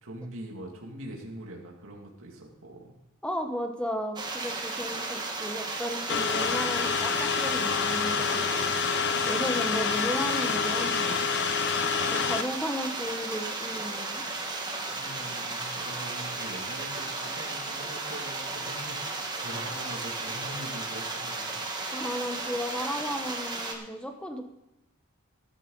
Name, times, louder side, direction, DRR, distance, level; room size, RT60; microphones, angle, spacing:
voice 1, 0.0-2.9 9.4-9.5 9.8-10.1 14.9-21.6, right 1 dB, 65° right, -1 dB, 2.4 m, -43 dB
voice 2, 3.2-8.7 9.3-11.3 12.1-14.2 21.9-24.4, equal, 5° left, 5 dB, 1.1 m, -34 dB
sound 1, 4.2-23.8, right 3 dB, 20° right, 1.6 m, -34 dB
sound 2, 6.1-12.4, left 6 dB, 50° left, 0.7 m, -28 dB
14.0 x 11.5 x 4.0 m, 0.90 s
head